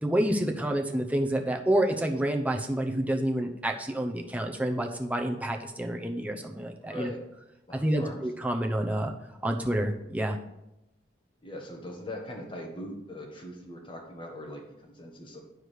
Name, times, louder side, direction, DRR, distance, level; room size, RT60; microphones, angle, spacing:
voice 1, 0.0-7.1 7.7-9.1 9.4-10.4, right 1 dB, 10° right, 2 dB, 0.7 m, -28 dB
voice 2, 6.8-7.2 7.7-8.2 11.4-15.4, left 1 dB, 25° left, 0 dB, 1.6 m, -41 dB
9.5 x 4.9 x 4.9 m, 0.88 s
head